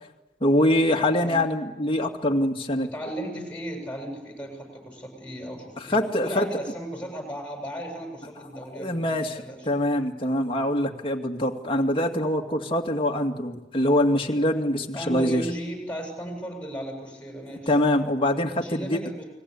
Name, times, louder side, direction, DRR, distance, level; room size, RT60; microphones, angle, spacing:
voice 1, 0.4-2.9 5.9-6.5 8.7-15.4 17.7-19.0, left 1 dB, 30° left, 2 dB, 2.3 m, -24 dB
voice 2, 2.8-9.8 14.9-17.7 18.5-19.2, equal, 10° left, 2 dB, 7.9 m, -36 dB
30.0 x 21.0 x 8.5 m, 1.0 s
head